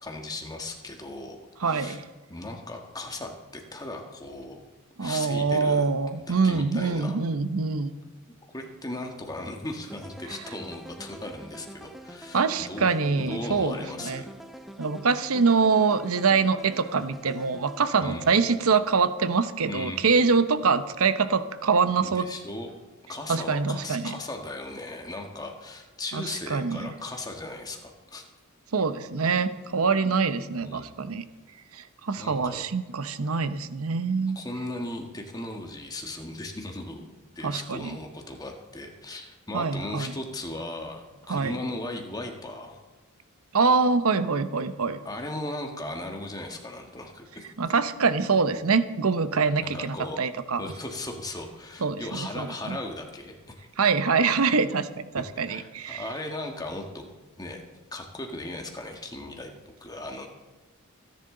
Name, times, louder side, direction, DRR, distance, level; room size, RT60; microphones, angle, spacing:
voice 1, 0.0-2.0 2.3-4.6 5.0-5.9 6.3-7.2 8.5-14.3 18.0-18.5 19.6-20.4 22.0-22.7 23.1-28.2 30.6-31.2 32.2-32.6 34.3-37.1 37.3-42.8 45.0-47.5 49.6-50.2 50.6-53.7 55.5-57.0 57.4-57.6 57.9-59.5 59.8-60.3, left 2 dB, 20° left, 3 dB, 1.6 m, -37 dB
voice 2, 1.6-2.0 5.0-7.9 12.3-13.8 14.0-14.2 14.8-22.2 23.3-24.1 26.1-26.2 26.5-26.9 28.7-31.2 31.7-34.4 37.4-37.9 39.5-40.1 41.3-41.5 43.5-45.0 47.6-50.6 51.8-52.8 53.8-56.0, right 5 dB, 85° right, 12 dB, 0.8 m, -24 dB
sound 1, 9.9-18.6, equal, ahead, 0.7 m, -45 dB
26.5 x 10.5 x 3.9 m, 1.2 s
head